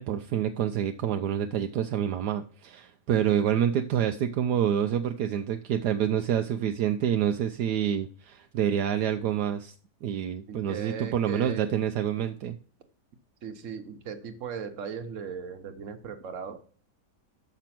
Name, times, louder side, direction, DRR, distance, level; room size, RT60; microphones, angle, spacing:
voice 1, 0.0-9.7 10.0-12.6, right 9 dB, 75° right, 7 dB, 1.1 m, -27 dB
voice 2, 10.5-11.7 13.4-16.6, right 6 dB, 50° right, 6 dB, 1.3 m, -38 dB
6.7 x 6.0 x 5.9 m, 0.41 s
omnidirectional pair, 1.8 m